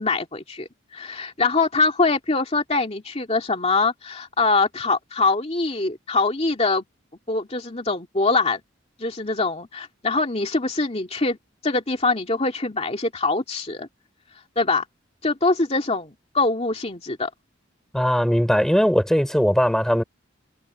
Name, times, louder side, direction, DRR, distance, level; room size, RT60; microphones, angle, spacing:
voice 1, 0.0-6.8 7.3-8.6 9.0-11.4 11.6-13.9 14.6-14.8 15.2-17.3, left 3 dB, 30° left, 2.5 m, -23 dB
voice 2, 17.9-20.0, equal, 5° left, 3.4 m, -19 dB
head